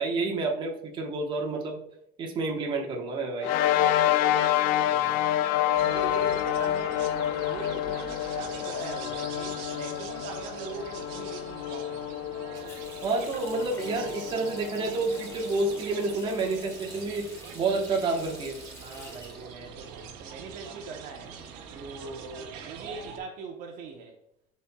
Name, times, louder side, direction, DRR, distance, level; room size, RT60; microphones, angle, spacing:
voice 1, 0.0-1.8 2.2-3.5 13.0-17.3 17.5-18.6, right 3 dB, 25° right, 1.1 m, -29 dB
sound 1, 3.4-16.2, left 12 dB, 55° left, 0.4 m, -28 dB
voice 2, 4.9-5.5 5.8-12.1 18.8-21.4 21.7-24.2, right 4 dB, 50° right, 0.8 m, -41 dB
sound 2, 5.8-23.2, right 6 dB, 75° right, 1.0 m, -44 dB
Water tap faucet, 12.6-20.3 20.6-21.7, left 1 dB, 15° left, 1.8 m, -48 dB
11.0 x 4.3 x 2.2 m
cardioid pair, 170°, 18 cm